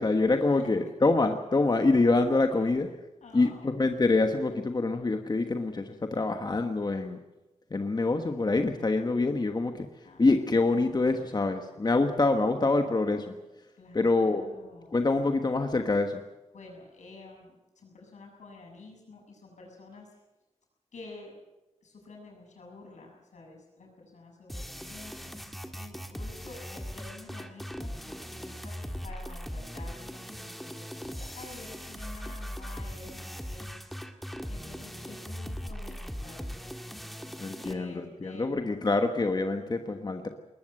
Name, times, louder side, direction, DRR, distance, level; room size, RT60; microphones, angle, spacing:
voice 1, 0.0-2.9 3.3-7.2 7.7-9.9 10.2-13.3 13.9-14.5 14.9-16.2 37.4-40.3, left 3 dB, 35° left, 6 dB, 1.4 m, -26 dB
voice 2, 3.2-4.0 10.0-10.3 11.0-11.9 13.8-15.0 16.5-20.1 20.9-21.3 21.8-33.7 34.5-36.6 37.6-38.7, left 3 dB, 85° left, 0 dB, 7.4 m, -49 dB
sound 1, 24.5-37.7, equal, ahead, 1.9 m, -39 dB
20.5 x 20.0 x 7.8 m, 1.1 s
wide cardioid pair, 85°, 12 cm